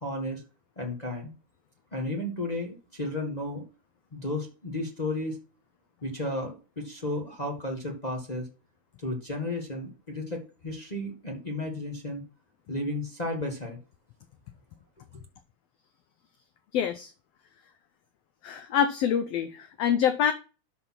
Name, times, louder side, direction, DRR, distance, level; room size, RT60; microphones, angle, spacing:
voice 1, 0.0-0.4 0.8-1.3 1.9-3.6 4.1-5.4 6.0-8.5 9.0-12.2 12.7-13.8, left 1 dB, 35° left, 1 dB, 0.7 m, -33 dB
voice 2, 16.7-17.1 18.4-20.3, left 8 dB, 75° left, 8 dB, 1.6 m, -26 dB
12.0 x 4.2 x 5.9 m, 0.34 s
omnidirectional pair, 3.5 m